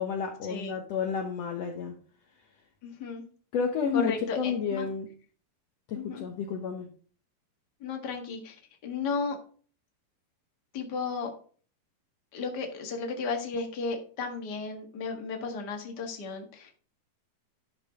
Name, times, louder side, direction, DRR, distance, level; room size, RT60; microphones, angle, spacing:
voice 1, 0.0-2.0 3.5-5.1 5.9-6.9, left 6 dB, 75° left, 3 dB, 1.5 m, -31 dB
voice 2, 2.8-3.2 3.9-4.8 5.9-6.2 7.8-8.5 8.8-9.4 10.7-11.3 12.3-16.7, left 4 dB, 45° left, 3 dB, 1.4 m, -34 dB
11.5 x 6.4 x 3.7 m, 0.42 s
omnidirectional pair, 4.4 m